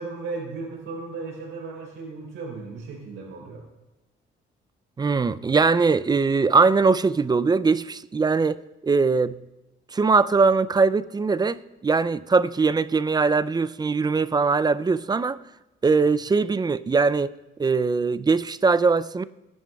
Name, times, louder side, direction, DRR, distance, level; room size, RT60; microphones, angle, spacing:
voice 1, 0.0-3.6, right 3 dB, 80° right, 3.5 m, -35 dB
voice 2, 5.0-8.6 8.8-9.4 9.9-15.4 15.8-17.3 17.6-19.2, right 4 dB, 20° right, 0.3 m, -21 dB
17.5 x 10.5 x 2.3 m
cardioid pair, 85°, 20 cm